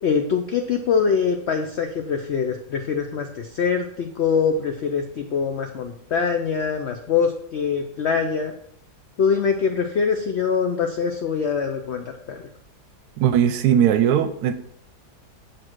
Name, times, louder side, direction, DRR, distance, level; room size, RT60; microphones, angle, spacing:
voice 1, 0.0-8.5 9.2-12.4, left 6 dB, 75° left, 5 dB, 0.6 m, -23 dB
voice 2, 13.2-14.5, right 9 dB, 75° right, 10 dB, 1.0 m, -19 dB
6.5 x 4.3 x 4.5 m, 0.68 s
omnidirectional pair, 1.8 m